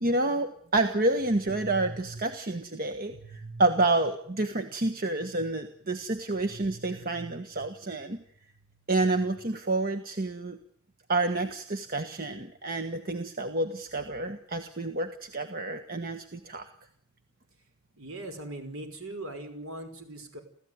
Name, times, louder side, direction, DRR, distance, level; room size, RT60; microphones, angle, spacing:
voice 1, 0.0-8.2 8.9-10.6 11.1-16.7, right 2 dB, 40° right, 7 dB, 1.5 m, -29 dB
voice 2, 18.0-20.4, right 1 dB, 65° right, 7 dB, 5.6 m, -40 dB
30.0 x 15.0 x 9.6 m, 0.64 s
head